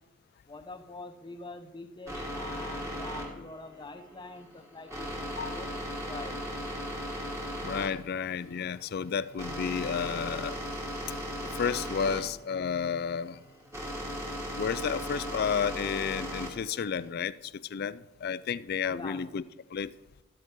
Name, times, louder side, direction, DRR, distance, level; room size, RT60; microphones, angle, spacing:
voice 1, 0.5-6.4 18.9-19.2, left 2 dB, 20° left, 0.8 m, -45 dB
sound 1, 2.1-17.1, equal, 15° right, 2.0 m, -37 dB
voice 2, 7.6-10.6 11.6-13.4 14.5-17.3 17.7-19.4 19.7-19.9, left 6 dB, 50° left, 0.3 m, -31 dB
13.0 x 12.5 x 3.8 m
head